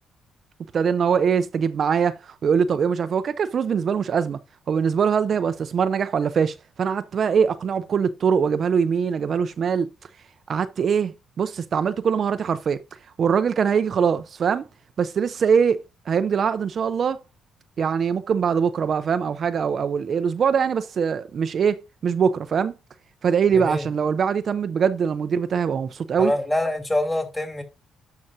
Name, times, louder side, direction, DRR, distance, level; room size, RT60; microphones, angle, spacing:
voice 1, 0.7-4.4 4.7-9.9 10.5-12.8 13.2-14.7 15.0-17.2 17.8-22.7 23.2-26.3, right 6 dB, 55° right, 0.5 m, -22 dB
voice 2, 23.5-23.9 26.2-27.6, left 1 dB, 15° left, 2.9 m, -25 dB
11.0 x 5.8 x 2.7 m
cardioid pair, 90°, 0 cm